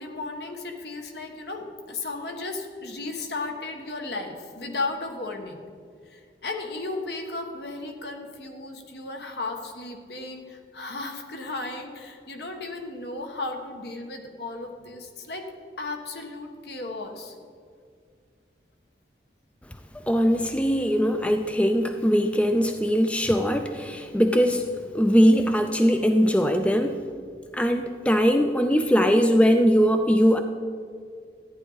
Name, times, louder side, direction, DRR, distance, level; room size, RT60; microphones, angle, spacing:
voice 1, 0.0-5.6 6.1-15.5 15.8-17.3, left 3 dB, 70° left, 3 dB, 1.3 m, -35 dB
voice 2, 20.1-24.6 24.9-27.0 27.5-30.4, equal, 5° left, 6 dB, 0.4 m, -21 dB
14.0 x 9.6 x 4.0 m, 2.2 s
head